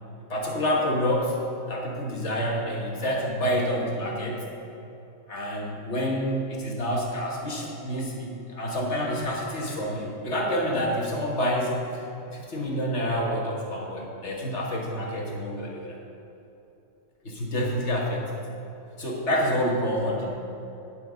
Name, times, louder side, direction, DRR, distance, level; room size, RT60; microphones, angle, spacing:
voice 1, 0.3-1.4 1.7-4.4 5.3-12.0 12.3-16.0 17.2-18.4 19.0-20.3, equal, 35° left, -2 dB, 1.5 m, -28 dB
9.8 x 7.8 x 5.1 m, 2.9 s
omnidirectional pair, 2.3 m